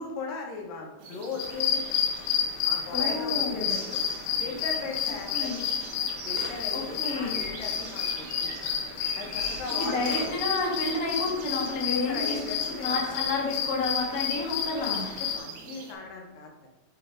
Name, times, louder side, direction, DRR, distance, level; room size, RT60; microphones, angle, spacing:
voice 1, 0.0-2.0 2.6-4.0 4.4-5.5 6.3-8.6 9.1-10.3 11.8-13.2 15.0-16.7, left 4 dB, 70° left, 0 dB, 2.7 m, -38 dB
sound 1, 1.0-15.9, right 4 dB, 90° right, 3.3 m, -44 dB
sound 2, 1.4-15.4, left 8 dB, 85° left, 2.7 m, -30 dB
voice 2, 2.9-3.7 5.3-5.6 6.7-7.4 9.8-12.4 12.8-15.1, left 3 dB, 50° left, -3 dB, 1.0 m, -30 dB
sound 3, 5.7-5.8 6.2-7.5 8.9-9.0 9.3-10.3, right 3 dB, 65° right, 2.1 m, -44 dB
8.1 x 3.8 x 4.9 m, 1.1 s
omnidirectional pair, 4.3 m